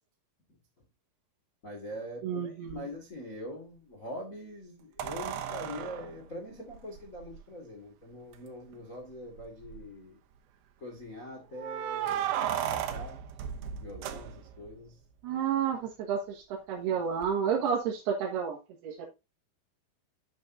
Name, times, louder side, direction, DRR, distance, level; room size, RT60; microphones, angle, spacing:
voice 1, 1.6-10.2 10.8-13.2 13.7-15.0, left 1 dB, 85° left, 0.7 m, -43 dB
voice 2, 2.2-2.8 15.2-18.6 18.8-19.1, right 7 dB, 65° right, 3.0 m, -30 dB
sound 1, 2.7-2.8 5.0-7.4 8.3-8.4 8.7-8.8 9.4-9.9 11.6-14.7 17.2-17.3, right 10 dB, 80° right, 2.3 m, -35 dB
10.5 x 6.5 x 2.7 m
omnidirectional pair, 6.0 m